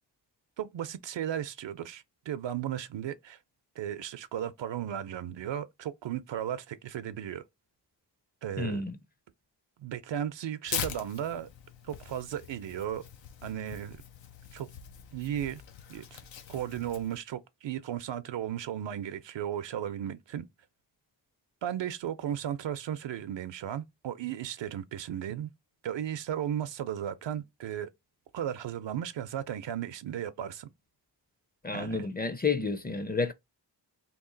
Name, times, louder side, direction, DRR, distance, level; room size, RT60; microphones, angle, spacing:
voice 1, 0.6-3.4 3.8-7.4 8.4-8.8 9.8-11.5 11.9-13.0 13.4-14.0 14.5-14.7 15.1-15.6 15.9-16.2 16.5-20.5 21.6-25.5 25.8-27.9 28.3-30.7 31.7-32.0, right 10 dB, 80° right, 0.5 m, -35 dB
voice 2, 8.6-9.0 31.6-33.3, left 4 dB, 20° left, 0.5 m, -30 dB
Tearing, 10.7-17.2, left 8 dB, 90° left, 0.6 m, -42 dB
3.0 x 2.4 x 3.8 m
cardioid pair, 55°, 44 cm